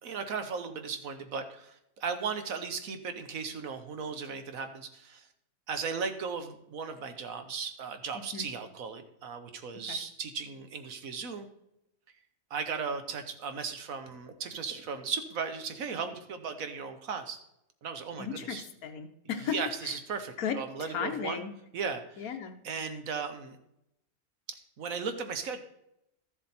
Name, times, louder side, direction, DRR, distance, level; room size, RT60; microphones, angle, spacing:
voice 1, 0.0-5.3 5.7-11.5 12.5-17.4 17.8-18.7 19.4-21.4 21.7-22.3 22.6-23.6 24.5-25.6, right 5 dB, 70° right, 8 dB, 1.4 m, -36 dB
voice 2, 8.1-8.5 9.9-10.0 18.2-20.0 20.4-21.5 22.2-22.6, left 7 dB, 75° left, 7 dB, 1.4 m, -36 dB
13.0 x 7.4 x 4.3 m, 0.81 s
omnidirectional pair, 1.5 m